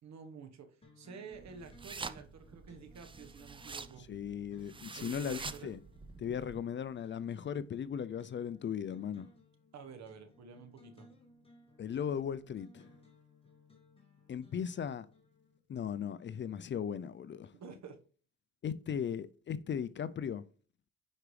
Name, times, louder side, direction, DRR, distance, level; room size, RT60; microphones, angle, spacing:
voice 1, 0.0-4.1 5.0-5.7 9.7-11.1 17.5-18.0, right 6 dB, 65° right, 1.3 m, -50 dB
sound 1, 0.8-15.6, left 1 dB, 20° left, 1.9 m, -62 dB
sound 2, 1.3-6.6, right 4 dB, 15° right, 0.4 m, -47 dB
voice 2, 4.1-5.8 6.2-9.3 11.8-12.9 14.3-15.1 15.7-17.6 18.6-20.4, left 8 dB, 40° left, 0.4 m, -37 dB
9.8 x 4.9 x 3.2 m
cardioid pair, 90°, 30 cm